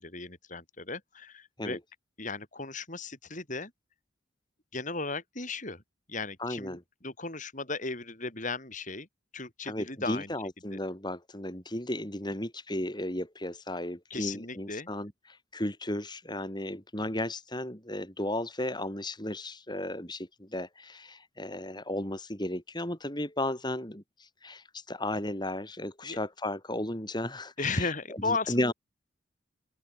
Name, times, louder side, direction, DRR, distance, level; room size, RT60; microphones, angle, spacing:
voice 1, 0.0-1.8 2.2-3.7 4.7-5.8 6.1-9.1 9.3-10.3 10.7-10.8 14.1-14.9 26.0-26.2 27.6-28.7, left 3 dB, 40° left, 6.6 m, -35 dB
voice 2, 6.4-6.8 9.6-27.9 28.2-28.7, left 1 dB, 20° left, 5.9 m, -34 dB
open air
head